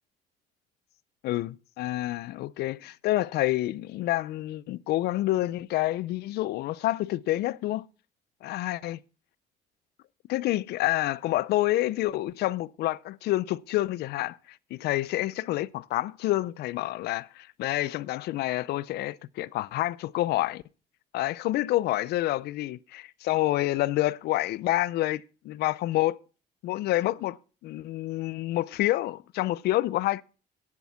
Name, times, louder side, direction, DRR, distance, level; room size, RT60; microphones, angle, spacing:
voice 1, 1.2-7.9 8.4-9.0 10.3-20.6 21.1-26.2 26.6-27.4 27.6-30.2, left 16 dB, 75° left, 0.5 m, -28 dB
9.8 x 7.8 x 5.7 m
cardioid pair, 110°, 17 cm